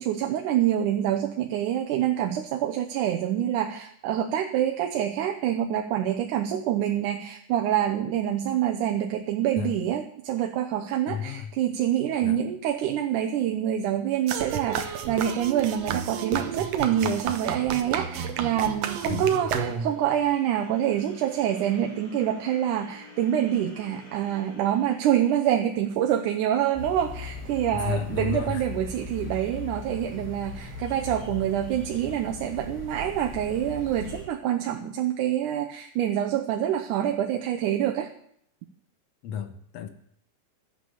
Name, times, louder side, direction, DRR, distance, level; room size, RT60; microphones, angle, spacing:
voice 1, 0.0-38.1, right 10 dB, 85° right, 2.3 m, -26 dB
voice 2, 11.1-11.5 12.2-12.4 19.1-19.5 27.7-28.7 39.2-39.9, left 8 dB, 65° left, 1.9 m, -32 dB
sound 1, 14.3-20.1, right 7 dB, 65° right, 2.0 m, -31 dB
sound 2, 18.8-26.9, left 2 dB, 45° left, 6.1 m, -51 dB
sound 3, 26.7-34.2, left 4 dB, 5° right, 3.1 m, -39 dB
12.5 x 8.8 x 7.0 m
omnidirectional pair, 3.5 m